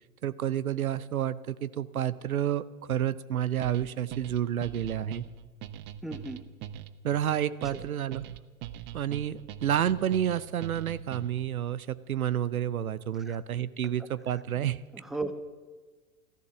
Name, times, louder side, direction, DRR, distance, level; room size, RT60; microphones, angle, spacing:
voice 1, 0.2-5.2 7.0-8.2 8.9-14.8, right 10 dB, 75° right, 17 dB, 0.7 m, -30 dB
sound 1, 3.6-11.5, right 11 dB, 25° right, 0.6 m, -41 dB
voice 2, 6.0-6.4 7.7-7.9 13.2-13.4 14.9-15.3, right 2 dB, ahead, 10 dB, 0.9 m, -35 dB
14.5 x 13.5 x 7.2 m, 1.3 s
figure-of-eight pair, 100°, 43 cm